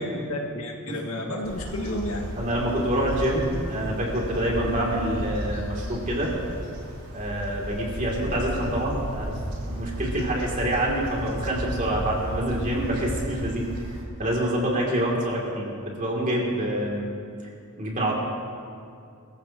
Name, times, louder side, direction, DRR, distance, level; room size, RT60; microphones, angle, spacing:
voice 1, 0.0-2.3, left 1 dB, 70° left, -1 dB, 2.1 m, -31 dB
sound 1, 1.4-14.0, equal, 60° right, 3.4 m, -34 dB
voice 2, 2.4-6.3 7.1-13.7 14.2-17.1 17.8-18.1, right 1 dB, 35° right, -3 dB, 3.0 m, -26 dB
23.5 x 15.0 x 3.1 m, 2.4 s
head